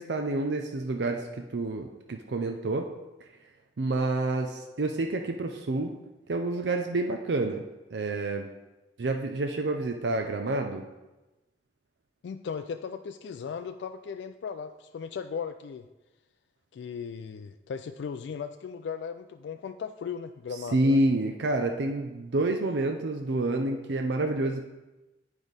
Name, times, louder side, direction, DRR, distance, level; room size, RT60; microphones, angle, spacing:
voice 1, 0.0-2.9 3.8-5.9 6.3-7.6 7.9-8.5 9.0-10.8 20.7-24.6, right 2 dB, 80° right, 4 dB, 0.5 m, -28 dB
voice 2, 12.2-15.9 16.7-21.0, left 6 dB, 80° left, 7 dB, 0.3 m, -37 dB
9.0 x 4.9 x 4.0 m, 1.1 s
head